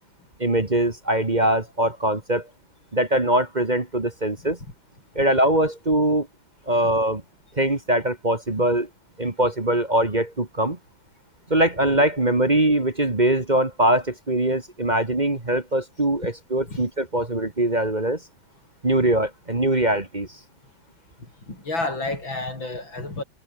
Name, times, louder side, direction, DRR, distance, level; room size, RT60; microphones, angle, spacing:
voice 1, 0.4-2.5 2.9-4.6 5.2-6.3 6.7-7.2 7.6-8.9 9.2-10.8 11.5-18.2 18.8-20.3, right 1 dB, 25° right, 2.1 m, -22 dB
voice 2, 21.5-23.2, left 2 dB, 85° left, 8.0 m, -30 dB
omnidirectional pair, 2.1 m